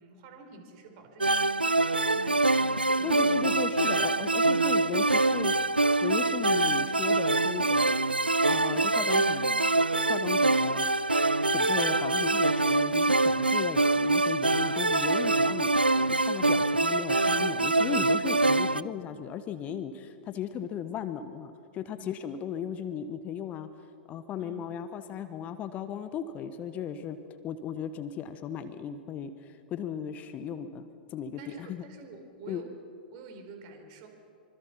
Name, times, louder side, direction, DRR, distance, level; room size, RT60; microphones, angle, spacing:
voice 1, 0.0-3.5 22.0-22.2 24.4-24.6 31.4-32.7 33.1-34.1, right 4 dB, 40° right, 5 dB, 4.2 m, -48 dB
sound 1, 1.2-18.8, right 2 dB, 85° right, 0.5 m, -25 dB
voice 2, 3.0-5.5 6.0-8.0 8.5-9.6 10.1-10.9 11.5-23.7 24.1-27.2 27.4-31.8 32.5-32.6, left 8 dB, 30° left, 11 dB, 1.1 m, -36 dB
25.5 x 25.0 x 5.9 m, 2.5 s
figure-of-eight pair, 100°, 5 cm